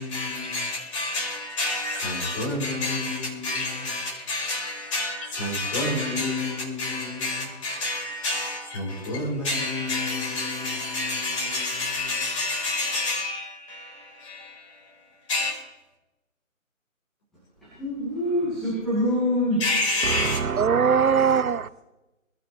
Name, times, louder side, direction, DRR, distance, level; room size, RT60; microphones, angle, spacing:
voice 1, 0.0-15.6 19.6-20.6, left 2 dB, 25° left, 4.9 m, -29 dB
voice 2, 17.8-19.6 21.0-21.3, left 1 dB, ahead, 1.6 m, -25 dB
voice 3, 20.1-21.7, right 6 dB, 85° right, 0.7 m, -21 dB
23.0 x 13.5 x 3.2 m
figure-of-eight pair, 160°, 41 cm